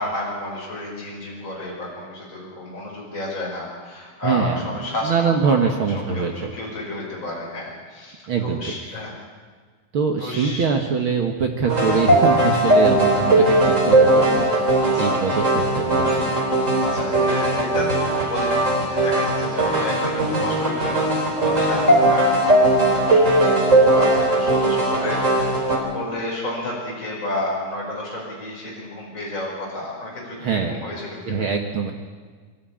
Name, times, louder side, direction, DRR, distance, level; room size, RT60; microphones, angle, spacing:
voice 1, 0.0-9.1 10.2-10.6 13.0-13.2 14.8-15.2 16.8-31.5, left 1 dB, 25° left, -4 dB, 5.9 m, -31 dB
voice 2, 4.2-4.6 5.0-6.5 8.3-9.0 9.9-16.4 30.4-30.8 31.2-31.9, right 5 dB, 55° right, 3 dB, 1.7 m, -23 dB
sound 1, 11.7-25.8, right 1 dB, 25° right, 3.8 m, -19 dB
24.5 x 13.0 x 8.7 m, 1.5 s
omnidirectional pair, 3.6 m